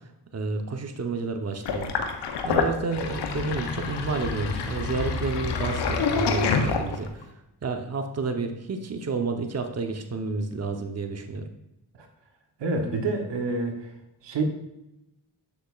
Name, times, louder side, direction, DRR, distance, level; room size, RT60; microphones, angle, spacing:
voice 1, 0.3-1.9 2.4-7.3 7.6-11.5, right 4 dB, 40° right, 5 dB, 0.9 m, -30 dB
Sink (filling or washing), 1.6-7.2, left 5 dB, 90° left, 0.8 m, -27 dB
voice 2, 12.6-13.9 14.2-14.4, right 3 dB, 85° right, 3 dB, 1.1 m, -28 dB
7.7 x 6.4 x 2.4 m, 0.89 s
cardioid pair, 50°, 41 cm